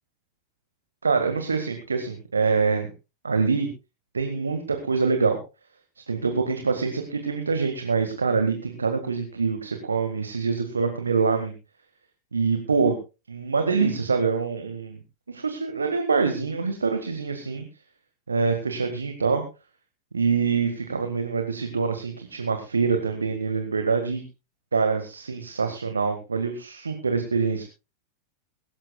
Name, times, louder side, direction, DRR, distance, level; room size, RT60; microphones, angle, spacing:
voice 1, 1.0-2.9 3.2-3.7 4.1-5.4 6.1-11.5 12.3-13.0 13.3-15.0 15.3-17.6 18.3-19.4 20.1-24.2 24.7-27.6, right 5 dB, 75° right, 6 dB, 1.7 m, -25 dB
23.0 x 13.0 x 2.3 m, 0.29 s
figure-of-eight pair, 90°, 0 cm